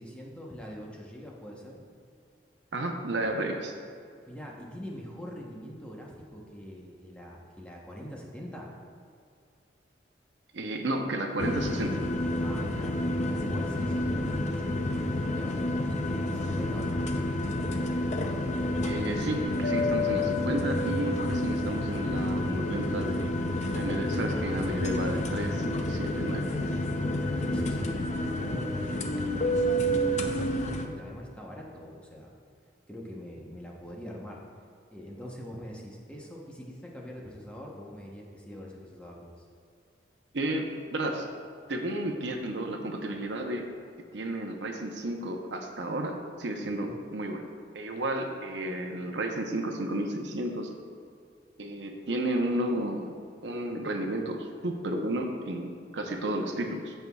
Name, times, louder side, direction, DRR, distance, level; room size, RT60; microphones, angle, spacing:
voice 1, 0.0-1.8 4.3-8.7 12.4-13.0 13.3-17.0 21.4-21.5 26.8-32.3 32.9-34.4 34.9-39.5 46.8-47.0, equal, 5° left, -2 dB, 0.9 m, -43 dB
voice 2, 2.7-3.7 10.5-12.0 18.8-23.3 23.7-26.4 40.3-41.3 41.7-43.7 44.1-47.5 47.7-50.7 51.6-53.1 53.4-56.9, right 1 dB, 75° right, 3 dB, 0.8 m, -32 dB
sound 1, 11.4-30.9, left 1 dB, 40° left, 0.5 m, -29 dB
14.5 x 5.5 x 2.3 m, 2.4 s
head